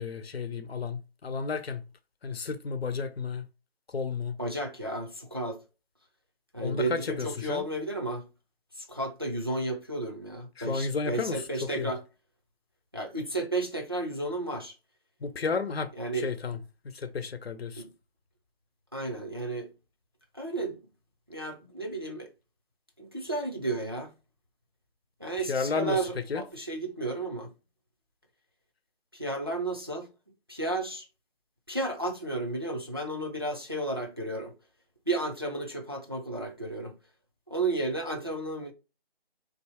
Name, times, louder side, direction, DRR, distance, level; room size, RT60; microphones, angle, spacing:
voice 1, 0.0-1.8 2.2-3.5 3.9-4.4 6.6-7.7 10.6-11.9 15.2-16.6 16.8-17.8 25.4-26.4, left 5 dB, 80° left, 0.8 m, -32 dB
voice 2, 4.4-5.6 6.5-8.3 8.8-12.0 12.9-14.7 16.0-16.3 17.8-17.9 18.9-19.7 20.3-20.8 21.3-22.3 23.0-24.1 25.2-27.5 29.1-30.1 30.5-31.1 31.7-34.5 35.1-36.9 37.5-38.7, right 2 dB, 25° right, 0.4 m, -32 dB
3.6 x 2.7 x 4.2 m
figure-of-eight pair, 160°, 30 cm